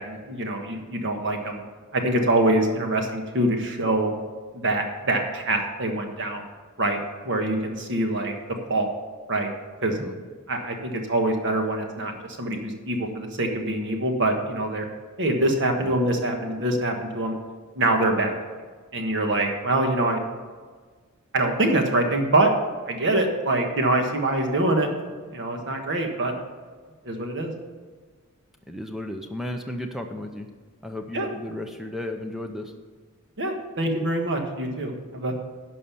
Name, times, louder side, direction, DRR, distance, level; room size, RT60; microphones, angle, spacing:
voice 1, 0.0-1.6 1.9-4.1 4.5-6.4 6.8-7.0 7.2-8.3 8.7-8.9 9.3-9.5 9.8-10.0 10.5-12.1 12.4-14.9 15.2-17.3 17.7-18.3 18.9-20.2 21.3-22.5 22.9-24.9 25.3-26.3 27.0-27.5 31.1-31.3 33.4-35.3, right 1 dB, 55° right, 3 dB, 1.4 m, -24 dB
voice 2, 28.7-30.5 30.8-32.7, left 1 dB, ahead, 4 dB, 0.6 m, -34 dB
11.5 x 5.4 x 7.0 m, 1.5 s
head